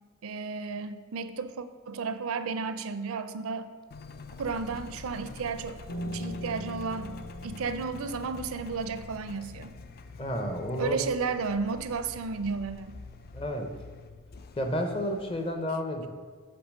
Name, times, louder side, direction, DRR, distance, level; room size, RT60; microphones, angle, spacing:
voice 1, 0.2-3.7 4.4-7.1 7.4-9.7 10.8-13.0, right 4 dB, 70° right, 12 dB, 0.4 m, -33 dB
Engine, 3.9-15.5, left 4 dB, 45° left, 0.4 m, -47 dB
Piano, 5.9-11.2, equal, 70° left, 1.2 m, -41 dB
voice 2, 10.2-11.0 13.3-13.7 14.6-16.1, equal, 25° left, 5 dB, 0.7 m, -31 dB
8.0 x 3.4 x 6.4 m, 1.5 s
head